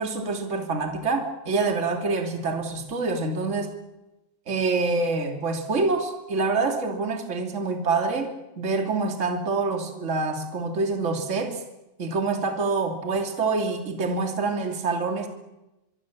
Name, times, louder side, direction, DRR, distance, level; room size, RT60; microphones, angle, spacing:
voice 1, 0.0-3.7 4.5-11.6 12.0-15.3, right 3 dB, 20° right, 4 dB, 2.4 m, -26 dB
24.5 x 24.0 x 7.4 m, 0.97 s
omnidirectional pair, 4.6 m